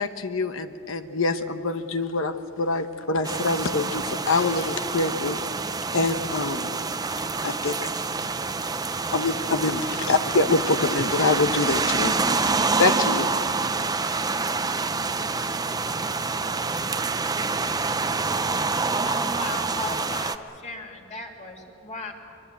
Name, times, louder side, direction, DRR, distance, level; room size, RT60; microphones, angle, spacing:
voice 1, 0.0-5.4 5.9-6.7 7.4-7.8 9.1-12.2 12.6-13.3, left 3 dB, 65° left, 9 dB, 1.0 m, -25 dB
sound 1, 3.2-20.4, right 4 dB, 20° right, 0.6 m, -27 dB
voice 2, 13.6-14.0 15.0-19.0, right 2 dB, 75° right, 10 dB, 1.0 m, -46 dB
voice 3, 19.0-22.1, left 2 dB, 35° left, 1 dB, 2.8 m, -36 dB
24.0 x 23.0 x 8.3 m, 2.7 s
head